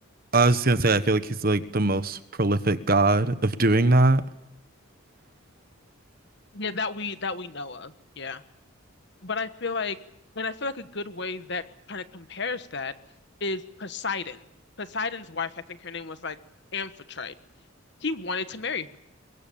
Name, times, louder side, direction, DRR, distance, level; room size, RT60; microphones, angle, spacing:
voice 1, 0.3-4.2, right 2 dB, 45° right, 12 dB, 1.2 m, -21 dB
voice 2, 6.5-8.4 9.2-10.0 10.3-11.6 11.9-12.9 13.4-14.5 14.8-16.4 16.7-17.3 18.0-19.0, left 4 dB, 55° left, 11 dB, 1.4 m, -32 dB
23.5 x 22.0 x 8.6 m, 0.81 s
head